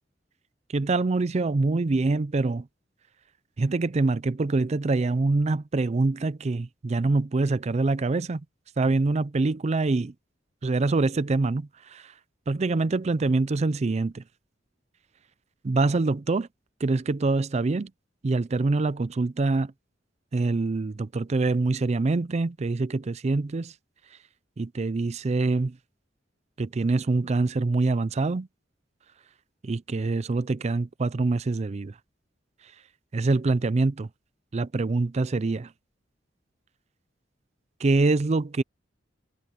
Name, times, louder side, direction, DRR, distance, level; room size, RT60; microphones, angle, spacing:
voice 1, 0.7-2.7 3.6-8.4 8.8-10.1 10.6-12.1 12.5-14.2 15.6-16.5 16.8-17.9 18.2-19.7 20.3-23.7 24.6-25.8 26.6-28.5 29.6-31.9 33.1-34.1 34.5-35.7 37.8-38.6, right 3 dB, 35° right, 0.4 m, -25 dB
head